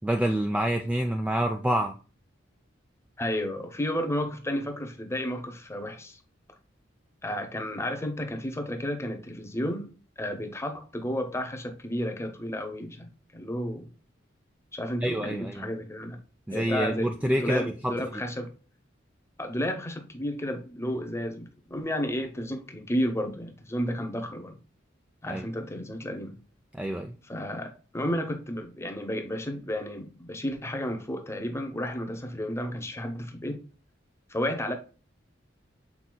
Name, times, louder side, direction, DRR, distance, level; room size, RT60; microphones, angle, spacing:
voice 1, 0.0-2.0 15.0-15.7 16.5-18.2 25.3-25.5 26.7-27.2, right 1 dB, 5° right, 0.3 m, -27 dB
voice 2, 3.2-6.2 7.2-13.9 14.7-16.2 16.5-18.5 19.4-24.6 25.2-26.3 27.3-33.6 34.3-34.7, equal, 15° left, 0.7 m, -32 dB
6.0 x 4.0 x 2.2 m
head